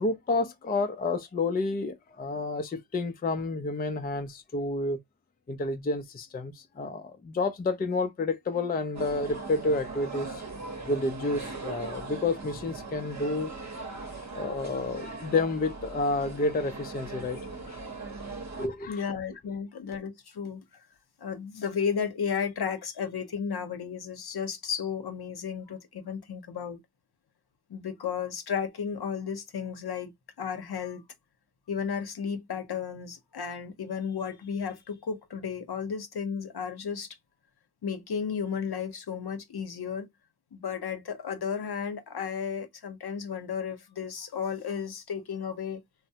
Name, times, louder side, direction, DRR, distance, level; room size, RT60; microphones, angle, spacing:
voice 1, 0.0-5.0 5.5-10.4 10.9-13.5 14.0-17.8 18.6-19.0, left 3 dB, 25° left, 0.4 m, -30 dB
sound 1, 8.9-18.7, right 3 dB, 40° right, 0.8 m, -39 dB
voice 2, 18.9-20.6 21.2-26.8 27.7-30.1 30.4-31.0 31.7-37.1 37.8-40.1 40.5-45.8, left 6 dB, 65° left, 0.8 m, -33 dB
3.2 x 2.0 x 2.7 m
wide cardioid pair, 70°, 42 cm